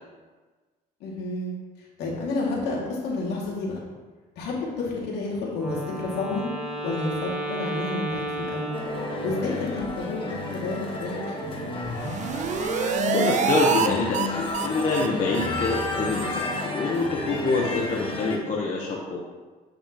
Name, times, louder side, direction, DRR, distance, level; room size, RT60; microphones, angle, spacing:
voice 1, 1.0-1.5 2.0-3.8 4.4-6.5 6.8-8.8 9.2-11.5, left 3 dB, 75° left, -4 dB, 2.1 m, -30 dB
Wind instrument woodwind instrument, 5.5-9.6, right 1 dB, 5° right, 1.3 m, -33 dB
sound 1, 8.7-18.4, left 2 dB, 30° left, 1.2 m, -31 dB
sound 2, 11.8-13.9 14.1-14.3 14.5-14.7 14.9-15.1 15.3-15.5 15.7-15.9 16.1-16.3 16.5-16.7 17.0-17.1, right 7 dB, 45° right, 0.5 m, -26 dB
voice 2, 13.1-19.2, left 3 dB, 50° left, -2 dB, 1.0 m, -26 dB
8.5 x 5.4 x 2.9 m, 1.3 s
cardioid pair, 110°, 17 cm